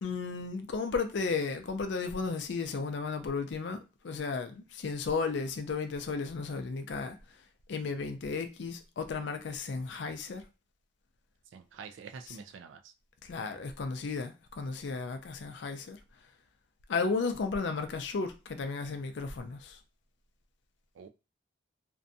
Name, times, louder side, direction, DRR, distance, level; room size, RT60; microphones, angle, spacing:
voice 1, 0.0-7.2 7.7-10.4 12.3-12.4 13.2-16.0 16.9-19.8, left 4 dB, 65° left, 0.4 m, -34 dB
voice 2, 11.5-12.9 21.0-21.1, right 5 dB, 80° right, 0.3 m, -47 dB
2.5 x 2.2 x 2.6 m
head